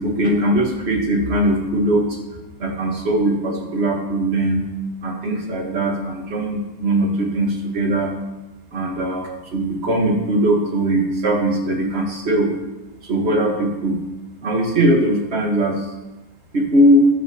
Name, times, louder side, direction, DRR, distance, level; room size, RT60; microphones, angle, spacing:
voice 1, 0.0-2.2 2.6-4.7 5.0-8.1 8.7-12.5 13.1-14.0 14.4-15.8 16.5-17.1, right 1 dB, 40° right, 1 dB, 1.2 m, -20 dB
11.0 x 7.2 x 2.8 m, 1.0 s
omnidirectional pair, 2.2 m